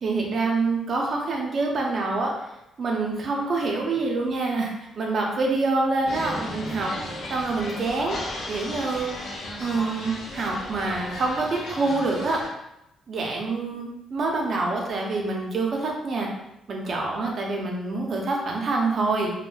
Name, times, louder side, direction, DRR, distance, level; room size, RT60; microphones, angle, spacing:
voice 1, 0.0-2.5 2.8-8.2 8.5-9.1 9.6-12.4 13.1-16.3 16.7-19.3, right 3 dB, 50° right, -1 dB, 0.6 m, -26 dB
sound 1, 6.1-12.5, left 1 dB, 80° left, 0.5 m, -35 dB
2.2 x 2.1 x 3.1 m, 0.88 s
cardioid pair, 90°, 0 cm